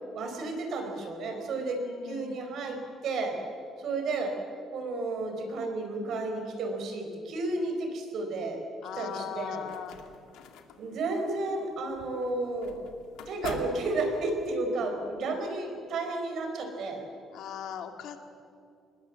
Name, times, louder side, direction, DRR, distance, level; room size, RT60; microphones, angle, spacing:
voice 1, 0.1-2.8 3.0-3.4 3.8-4.3 4.7-8.6 9.0-9.6 10.8-12.9 13.3-17.0, right 2 dB, 55° right, 4 dB, 4.9 m, -32 dB
voice 2, 1.6-2.4 8.8-10.0 17.3-18.2, left 8 dB, 65° left, 6 dB, 2.2 m, -39 dB
sound 1, 9.2-14.5, left 6 dB, 85° left, 2.2 m, -46 dB
26.5 x 21.0 x 7.6 m, 2.4 s
cardioid pair, 165°, 0 cm